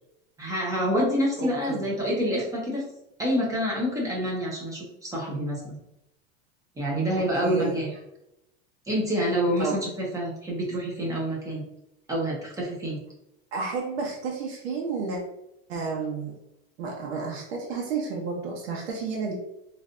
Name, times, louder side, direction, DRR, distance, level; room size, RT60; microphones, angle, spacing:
voice 1, 0.4-2.8 3.2-5.8 6.8-7.9 8.9-11.6 12.1-13.0, equal, 10° right, -3 dB, 0.8 m, -27 dB
voice 2, 1.4-1.9 7.1-7.8 9.6-9.8 13.5-15.2 15.7-16.3 16.8-19.3, right 4 dB, 85° right, -1 dB, 0.9 m, -31 dB
3.2 x 2.6 x 2.5 m, 0.84 s
supercardioid pair, 145°, 31 cm